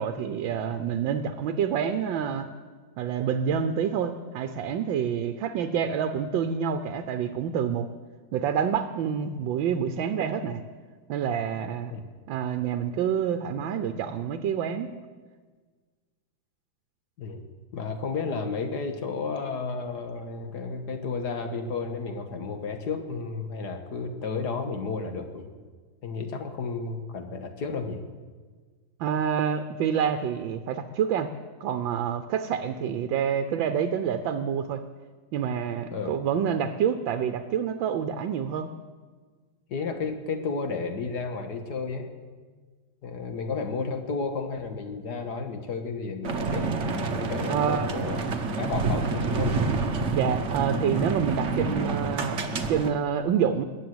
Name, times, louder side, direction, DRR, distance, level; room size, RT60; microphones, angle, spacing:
voice 1, 0.0-2.5 3.0-7.9 8.3-10.6 11.1-11.9 12.3-14.9 29.0-31.3 31.6-34.8 35.3-38.7 47.5-47.9 50.1-53.6, right 7 dB, 80° right, 9 dB, 1.5 m, -27 dB
voice 2, 17.7-25.5 26.0-28.0 35.9-36.1 39.7-42.1 43.0-46.8 47.2-48.2 48.6-49.6, left 4 dB, 60° left, 6 dB, 1.9 m, -32 dB
sound 1, 46.2-52.9, right 3 dB, 45° right, 1.2 m, -28 dB
21.0 x 8.6 x 7.8 m, 1.5 s
omnidirectional pair, 2.1 m